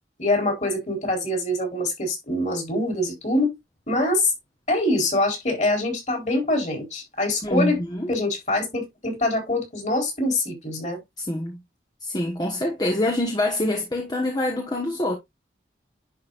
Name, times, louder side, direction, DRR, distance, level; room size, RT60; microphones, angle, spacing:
voice 1, 0.2-3.5 3.9-4.3 4.7-7.8 8.1-11.0, left 1 dB, 40° left, 4.4 m, -24 dB
voice 2, 7.4-8.1 11.2-11.6 12.0-15.2, left 1 dB, 20° left, 1.2 m, -25 dB
10.5 x 5.2 x 2.5 m
head